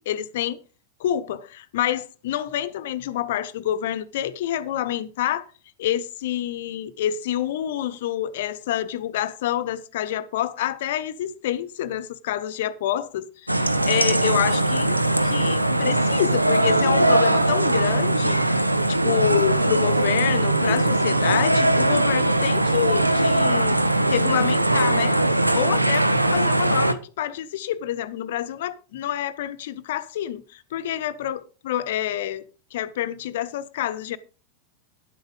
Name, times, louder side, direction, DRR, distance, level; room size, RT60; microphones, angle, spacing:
voice 1, 0.1-0.6 1.0-5.4 5.8-23.8 24.1-25.2 25.5-32.4 32.7-34.2, left 11 dB, 55° left, 0.9 m, -27 dB
sound 1, 13.5-26.9, right 1 dB, 85° right, 0.8 m, -20 dB
10.5 x 8.1 x 5.3 m
figure-of-eight pair, 90°, 0 cm